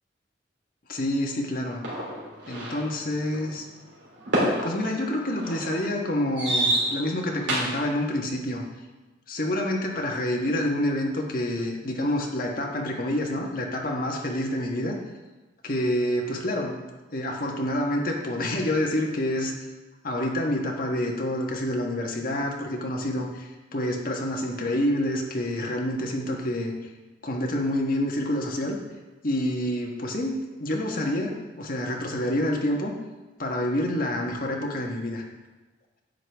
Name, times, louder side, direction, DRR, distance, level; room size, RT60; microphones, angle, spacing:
voice 1, 0.9-1.8 2.5-3.6 4.6-8.6 9.3-15.0 15.6-16.8 17.1-19.5 20.0-26.7 27.2-28.8 29.2-32.9 33.4-35.2, left 1 dB, 50° left, 0 dB, 1.4 m, -27 dB
sound 1, 1.8-7.9, right 1 dB, 85° right, 3.4 m, -29 dB
10.5 x 7.9 x 3.5 m, 1.2 s
head